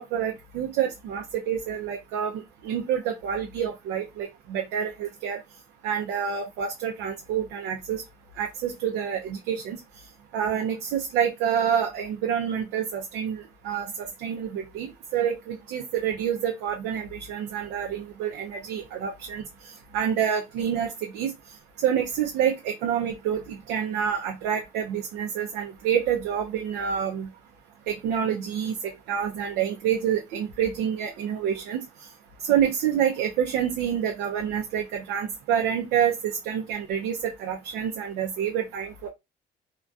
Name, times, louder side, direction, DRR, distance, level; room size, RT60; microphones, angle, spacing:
voice 1, 0.0-2.3 2.6-5.4 5.8-8.0 8.4-9.8 10.3-19.4 19.9-21.3 21.8-27.3 27.9-31.8 32.4-39.1, right 8 dB, 85° right, 0.4 m, -27 dB
2.3 x 2.2 x 2.5 m
cardioid pair, 110°, 17 cm